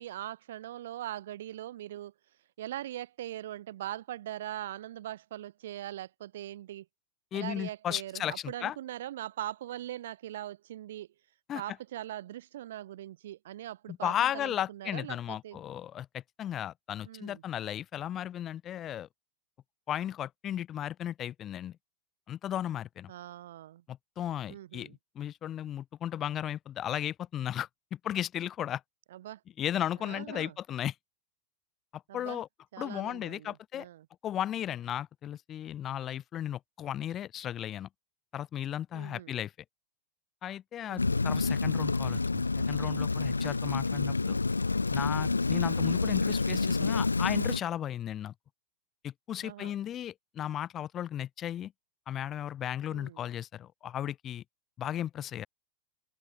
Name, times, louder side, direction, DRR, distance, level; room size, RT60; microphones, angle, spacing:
voice 1, 0.0-2.1 2.6-6.9 7.3-11.1 11.5-15.6 17.0-17.4 23.1-23.8 24.5-25.0 29.1-29.4 30.0-30.6 32.1-32.4 32.7-34.1 38.9-39.3 40.9-41.2 49.4-49.8 52.9-53.2, right 13 dB, 60° right, 4.1 m, -41 dB
voice 2, 7.3-8.7 11.5-11.6 13.9-19.1 19.9-21.8 22.3-23.1 23.9-28.8 29.6-30.9 31.9-32.5 32.8-33.9 34.2-37.9 38.3-39.5 40.4-44.4 44.9-48.3 49.0-51.7 52.1-54.4 54.8-55.5, left 11 dB, 30° left, 4.9 m, -35 dB
Rain, 41.0-47.6, left 3 dB, 80° left, 2.4 m, -28 dB
open air
figure-of-eight pair, 90°, 0 cm